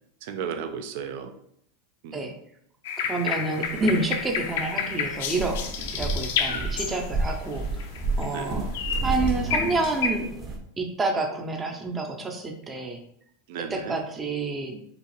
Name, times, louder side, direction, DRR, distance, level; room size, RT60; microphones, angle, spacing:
voice 1, 0.2-1.3 2.0-2.3 6.5-6.7 8.3-8.7 13.5-14.0, right 7 dB, 65° right, 8 dB, 0.5 m, -35 dB
sound 1, 2.8-7.3 7.8-8.4 8.7-10.1, left 7 dB, 75° left, 0.6 m, -30 dB
voice 2, 3.0-5.6 5.9-7.7 8.2-8.7 9.0-10.3 10.8-13.0 13.6-14.8, right 3 dB, 15° right, 3 dB, 0.6 m, -28 dB
sound 2, 3.6-10.6, right 2 dB, 35° right, 0.9 m, -32 dB
4.9 x 2.5 x 3.3 m, 0.70 s
supercardioid pair, 135°, 0 cm